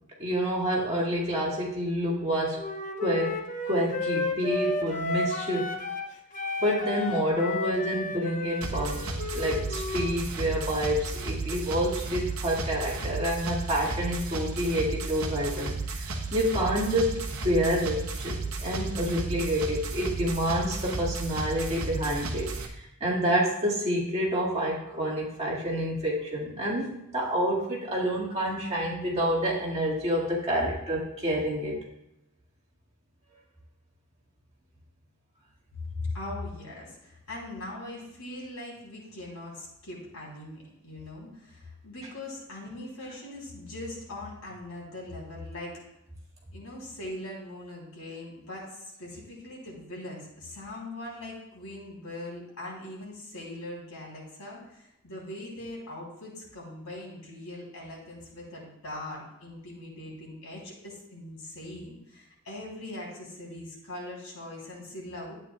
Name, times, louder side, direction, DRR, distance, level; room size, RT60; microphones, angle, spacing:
voice 1, 0.2-2.6 3.0-3.4 3.7-5.7 6.6-16.0 16.3-22.5 23.0-31.8, equal, 30° right, -5 dB, 1.9 m, -28 dB
Wind instrument woodwind instrument, 2.5-6.1 6.3-10.2, left 3 dB, 35° left, 0.7 m, -32 dB
sound 1, 8.6-22.7, right 3 dB, 65° right, 1.0 m, -33 dB
voice 2, 35.9-45.8 46.5-65.3, left 1 dB, 75° left, -4 dB, 3.3 m, -41 dB
11.5 x 8.9 x 2.3 m, 0.86 s
head